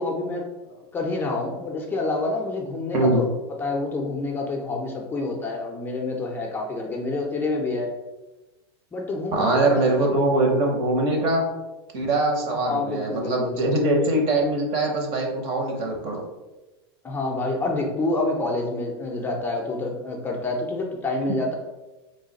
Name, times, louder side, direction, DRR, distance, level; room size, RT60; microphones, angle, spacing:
voice 1, 0.0-3.2 3.6-7.9 8.9-10.2 12.5-13.6 17.0-21.5, left 2 dB, 15° left, 0 dB, 0.5 m, -28 dB
voice 2, 9.3-11.4 11.9-16.2, right 2 dB, 50° right, 2 dB, 0.9 m, -22 dB
3.1 x 2.2 x 3.9 m, 1.1 s
supercardioid pair, 135°, 13 cm